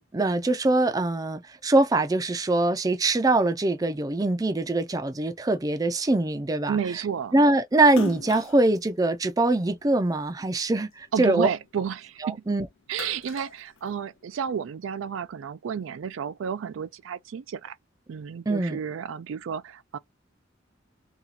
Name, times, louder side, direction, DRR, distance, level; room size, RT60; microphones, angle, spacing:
voice 1, 0.0-6.8 7.3-11.5 12.2-12.7 18.5-18.8, right 2 dB, 20° right, 0.4 m, -23 dB
voice 2, 6.7-7.3 11.1-12.4 12.9-17.8 18.1-20.0, right 7 dB, 85° right, 0.4 m, -31 dB
Splash splatter, 7.9-10.4 10.9-12.3 12.7-14.4, left 4 dB, 80° left, 0.4 m, -39 dB
2.8 x 2.3 x 3.9 m
head